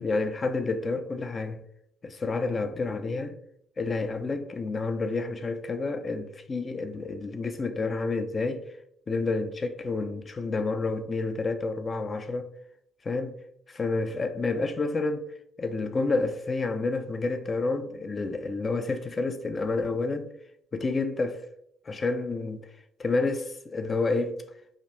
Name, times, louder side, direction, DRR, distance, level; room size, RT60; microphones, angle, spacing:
voice 1, 0.0-1.6 2.0-3.4 3.8-8.6 9.1-12.5 13.0-13.4 13.7-15.3 15.6-20.3 20.7-21.4 21.9-22.7 23.0-24.4, left 3 dB, 30° left, 0.4 m, -29 dB
4.9 x 2.6 x 2.7 m
cardioid pair, 115°, 0 cm